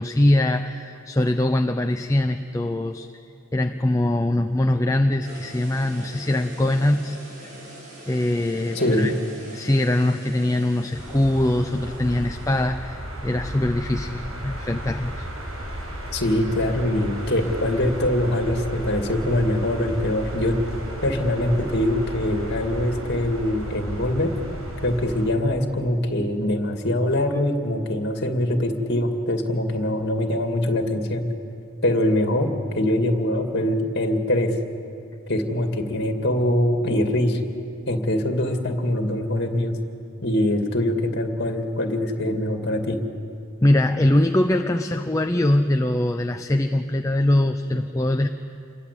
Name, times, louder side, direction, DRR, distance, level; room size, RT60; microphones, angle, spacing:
voice 1, 0.0-3.1 3.5-7.2 8.1-9.1 9.5-15.3 43.6-48.3, left 1 dB, 15° left, 6 dB, 0.6 m, -22 dB
sound 1, 5.2-12.6, right 1 dB, 35° right, 6.6 m, -42 dB
voice 2, 8.7-9.2 16.1-20.6 21.0-24.3 24.8-31.2 31.8-34.6 35.3-37.4 37.9-39.8 40.2-43.0, left 1 dB, 50° left, 5 dB, 2.4 m, -23 dB
sound 2, 10.9-25.3, equal, 75° right, 6.0 m, -34 dB
28.0 x 22.0 x 8.4 m, 2.6 s
head